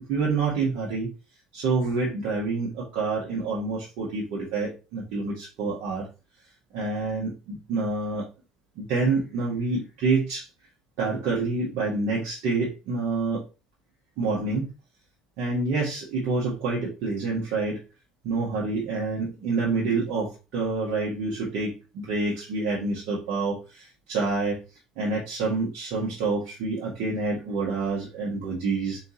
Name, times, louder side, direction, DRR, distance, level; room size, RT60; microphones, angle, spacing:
voice 1, 0.1-1.1 1.5-6.1 6.7-8.3 8.8-10.5 11.0-13.4 14.2-14.7 15.4-17.8 18.2-24.6 25.0-29.0, right 3 dB, 65° right, -6 dB, 1.5 m, -27 dB
4.1 x 3.5 x 2.9 m, 0.31 s
hypercardioid pair, 65°, 2 cm